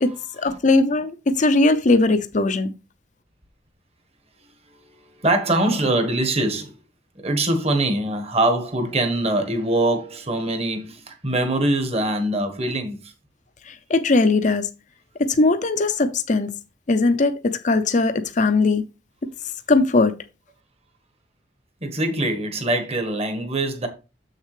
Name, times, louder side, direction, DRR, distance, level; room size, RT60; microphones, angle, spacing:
voice 1, 0.4-2.7 13.7-14.7 15.4-16.5 16.9-18.8 19.7-20.1, left 3 dB, 45° left, 0.6 m, -19 dB
voice 2, 4.8-6.8 7.2-13.1 21.8-23.9, right 1 dB, 35° right, 1.3 m, -23 dB
7.4 x 6.5 x 3.2 m
head